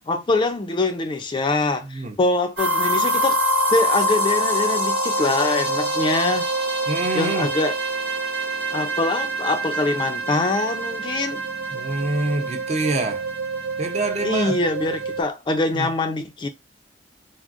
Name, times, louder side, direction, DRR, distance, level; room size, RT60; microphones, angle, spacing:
voice 1, 0.0-3.4 3.7-6.5 7.1-7.8 8.7-11.4 14.2-16.5, left 2 dB, 25° left, 0.3 m, -24 dB
voice 2, 1.8-2.2 6.9-7.5 11.7-13.3 13.8-14.6 15.7-15.9, right 2 dB, 40° right, 0.5 m, -26 dB
sound 1, 2.6-15.2, right 1 dB, 65° right, 1.0 m, -25 dB
3.6 x 2.0 x 2.4 m
head